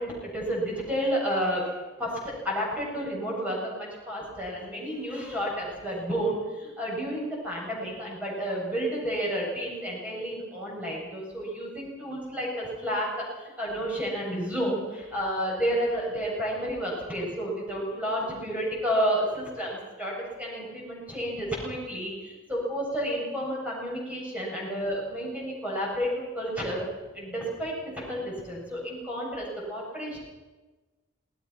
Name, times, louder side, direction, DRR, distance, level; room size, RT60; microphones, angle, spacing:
voice 1, 0.0-1.6 2.0-2.1 2.4-13.1 13.4-26.8 27.1-27.7 28.1-30.2, equal, 5° right, -4 dB, 8.0 m, -31 dB
28.0 x 19.0 x 6.1 m, 1.2 s
head